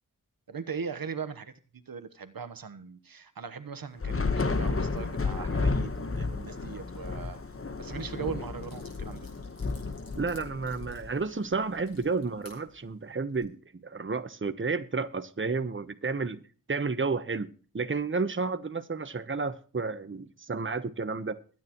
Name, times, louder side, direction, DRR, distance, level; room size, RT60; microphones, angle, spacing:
voice 1, 0.5-7.4 7.8-9.3, right 6 dB, 80° right, 11 dB, 1.2 m, -39 dB
Thunder / Rain, 4.0-11.5, left 3 dB, 40° left, 1.2 m, -32 dB
sound 1, 8.6-12.6 13.2-13.4, left 2 dB, 80° left, 6.2 m, -56 dB
voice 2, 10.1-16.4 16.7-17.5 17.7-21.4, right 4 dB, 35° right, 11 dB, 1.0 m, -31 dB
22.0 x 9.5 x 3.0 m, 0.40 s
wide cardioid pair, 70°, 34 cm